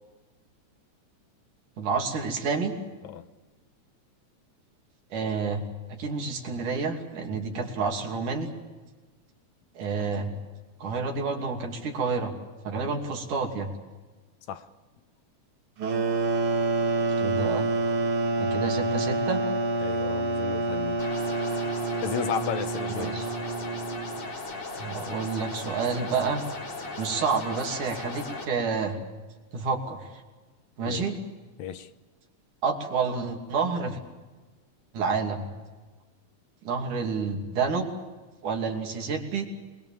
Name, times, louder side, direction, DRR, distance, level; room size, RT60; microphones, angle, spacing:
voice 1, 1.8-2.7 5.1-5.6 5.9-8.5 9.8-10.3 10.8-12.3 12.6-13.7 17.2-17.7 18.4-19.4 22.9-23.3 24.8-26.5 27.0-29.0 29.5-30.0 30.8-31.2 32.6-34.0 34.9-35.5 36.6-37.9 38.4-39.5, right 5 dB, 85° right, 4.4 m, -29 dB
sound 1, 15.8-24.3, right 3 dB, 50° right, 2.4 m, -27 dB
voice 2, 19.8-21.1 22.0-23.2 30.9-31.0 31.6-31.9, left 9 dB, 75° left, 2.3 m, -33 dB
sound 2, 21.0-28.5, left 2 dB, 55° left, 4.9 m, -37 dB
26.5 x 21.5 x 7.3 m
omnidirectional pair, 3.5 m